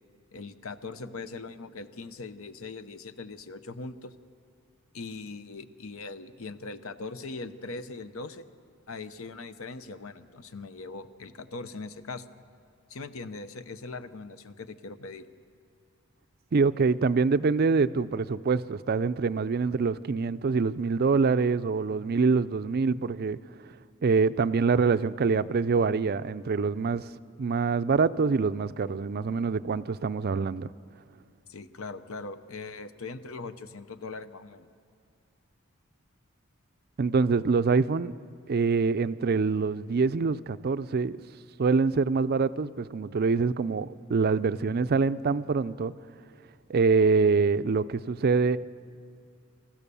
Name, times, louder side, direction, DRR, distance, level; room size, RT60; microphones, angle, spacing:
voice 1, 0.3-4.1 4.9-8.4 8.9-12.2 12.9-15.3 31.5-34.7, left 3 dB, 70° left, 0.8 m, -40 dB
voice 2, 16.5-23.4 24.0-27.1 27.4-30.7 37.0-38.1 38.5-41.2 41.6-45.9 46.7-48.6, right 4 dB, 45° right, 0.4 m, -25 dB
26.0 x 14.5 x 6.9 m
head